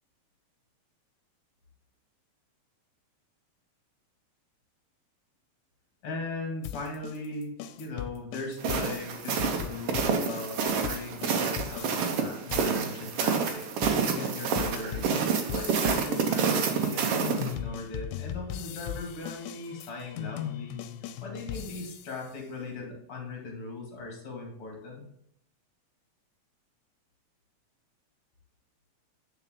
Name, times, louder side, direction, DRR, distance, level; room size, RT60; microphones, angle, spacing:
voice 1, 6.0-15.1 15.4-20.8 21.2-25.1, left 2 dB, 50° left, 0 dB, 2.8 m, -38 dB
sound 1, 6.6-12.2 12.5-22.2, left 10 dB, 85° left, 2.0 m, -39 dB
sound 2, 8.6-17.5, right 6 dB, 65° right, 1.6 m, -28 dB
9.5 x 4.7 x 3.8 m, 0.71 s
omnidirectional pair, 3.3 m